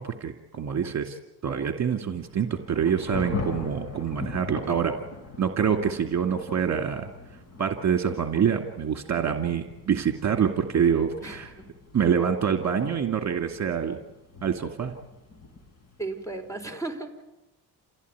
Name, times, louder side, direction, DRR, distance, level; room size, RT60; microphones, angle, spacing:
voice 1, 0.0-4.9 5.4-7.1 7.6-11.5 11.9-14.0 14.4-14.9, right 7 dB, 45° right, 5 dB, 2.4 m, -26 dB
Thunder / Rain, 2.2-16.7, left 3 dB, 40° left, 5.0 m, -41 dB
voice 2, 11.2-11.6 16.0-17.2, right 3 dB, 10° left, 7 dB, 4.4 m, -35 dB
28.5 x 16.0 x 9.7 m, 0.98 s
cardioid pair, 100°, 40 cm